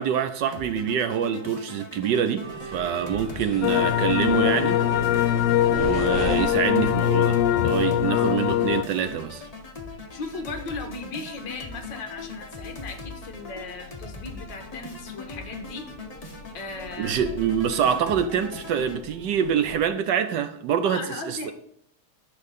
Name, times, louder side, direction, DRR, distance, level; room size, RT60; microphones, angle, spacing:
voice 1, 0.0-5.1 5.7-9.5 17.0-21.5, right 8 dB, 70° right, 1.1 m, -26 dB
sound 1, 0.5-19.0, left 3 dB, 35° left, 0.6 m, -41 dB
sound 2, 2.4-19.8, right 1 dB, 35° right, 3.5 m, -41 dB
voice 2, 3.5-3.9 8.1-8.5 10.1-15.9 16.5-17.2 20.8-21.5, left 3 dB, 60° left, 2.0 m, -37 dB
sound 3, 3.6-8.8, left 11 dB, 90° left, 1.5 m, -22 dB
13.0 x 6.1 x 4.1 m
omnidirectional pair, 2.4 m